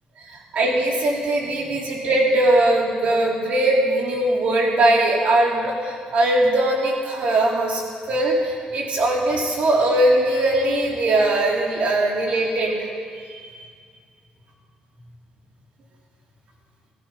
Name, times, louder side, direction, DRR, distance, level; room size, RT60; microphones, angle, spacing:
voice 1, 0.3-7.8 8.1-12.8 13.4-13.6, right 1 dB, 55° right, -2 dB, 3.5 m, -20 dB
15.0 x 15.0 x 5.8 m, 2.1 s
cardioid pair, 135°, 3 cm